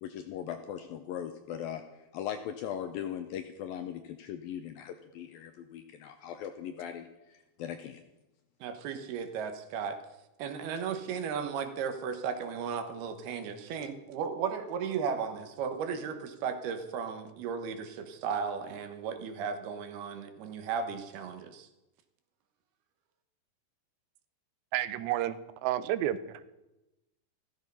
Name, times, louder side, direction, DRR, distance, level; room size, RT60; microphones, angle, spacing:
voice 1, 0.0-1.8 2.1-8.0, left 9 dB, 75° left, 8 dB, 2.2 m, -39 dB
voice 2, 8.6-10.0 10.4-21.7, right 6 dB, 70° right, 7 dB, 3.0 m, -35 dB
voice 3, 24.7-26.4, right 13 dB, 90° right, 14 dB, 3.1 m, -31 dB
15.0 x 15.0 x 5.5 m, 0.97 s
omnidirectional pair, 5.0 m